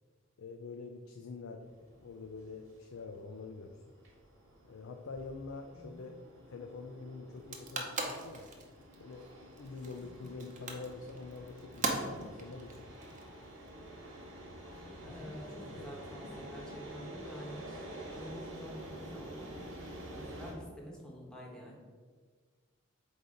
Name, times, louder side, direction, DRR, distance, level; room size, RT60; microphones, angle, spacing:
voice 1, 0.4-3.8 4.6-6.2 6.5-8.5 9.0-12.9 15.0-15.2 15.7-15.9 17.0-17.1, left 4 dB, 85° left, 4 dB, 0.5 m, -46 dB
sound 1, 1.6-20.5, right 1 dB, 80° right, 1.6 m, -49 dB
voice 2, 5.7-6.1 15.0-19.6 20.1-21.8, equal, 5° left, -3 dB, 1.2 m, -48 dB
sound 2, 7.3-13.7, right 3 dB, 40° right, 0.8 m, -39 dB
sound 3, 11.7-12.6 13.3-15.8 16.1-17.2 17.5-17.6 17.9-18.2, equal, 35° left, 0.8 m, -55 dB
7.8 x 2.7 x 4.9 m, 1.5 s
head